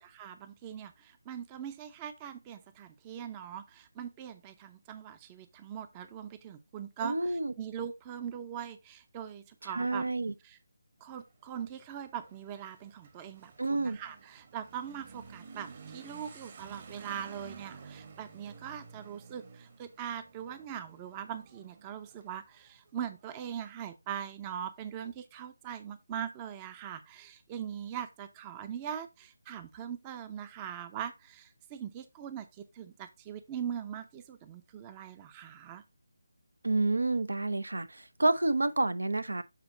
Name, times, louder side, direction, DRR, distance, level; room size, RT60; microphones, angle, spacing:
voice 1, 0.0-10.0 10.4-10.6 11.0-35.8, right 9 dB, 20° right, 0.6 m, -41 dB
voice 2, 7.0-7.5 9.6-10.3 13.6-14.0 36.6-39.4, right 2 dB, 80° right, 0.9 m, -29 dB
Motorcycle / Accelerating revving vroom, 11.0-23.3, right 5 dB, 35° right, 1.3 m, -52 dB
7.5 x 4.4 x 3.8 m
figure-of-eight pair, 155°, 0 cm